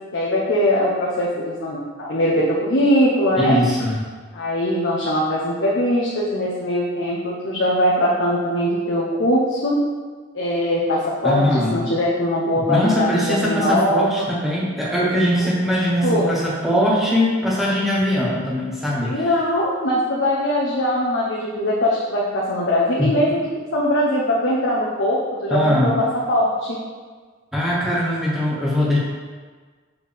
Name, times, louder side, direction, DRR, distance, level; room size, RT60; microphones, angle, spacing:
voice 1, 0.1-3.6 4.3-9.8 10.3-14.1 15.4-15.5 16.0-16.3 19.1-26.8, left 1 dB, 65° left, -5 dB, 0.9 m, -21 dB
voice 2, 3.4-4.0 11.2-11.9 12.7-19.3 23.0-23.1 25.5-26.0 27.5-29.0, equal, ahead, -6 dB, 1.2 m, -21 dB
6.9 x 4.6 x 3.5 m, 1.5 s
head